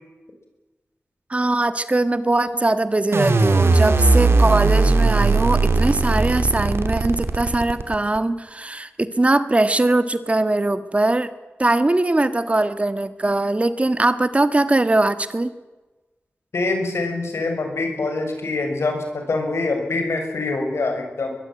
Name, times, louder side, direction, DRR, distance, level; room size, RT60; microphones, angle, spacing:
voice 1, 1.3-11.3 11.6-15.5, right 2 dB, 30° right, 12 dB, 1.6 m, -21 dB
sound 1, 3.1-8.2, right 3 dB, 70° right, 3.0 m, -18 dB
voice 2, 16.5-21.3, left 3 dB, 85° left, 4 dB, 6.6 m, -24 dB
23.5 x 21.5 x 9.2 m, 1.2 s
wide cardioid pair, 100°, 4 cm